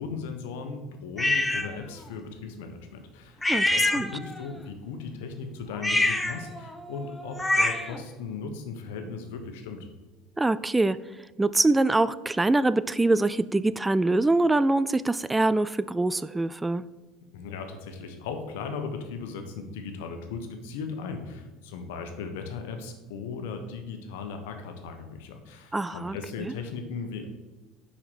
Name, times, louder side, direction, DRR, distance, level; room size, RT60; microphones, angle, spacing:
voice 1, 0.0-9.9 17.3-27.3, left 5 dB, 75° left, 6 dB, 1.2 m, -37 dB
sound 1, 1.2-1.7 3.4-4.5 5.7-8.0, left 2 dB, 10° left, 1.0 m, -26 dB
voice 2, 3.5-4.1 10.4-11.0 11.4-16.8 25.7-26.5, right 2 dB, 15° right, 16 dB, 0.3 m, -24 dB
5.9 x 5.6 x 6.3 m, 1.1 s
hypercardioid pair, 80°, 0 cm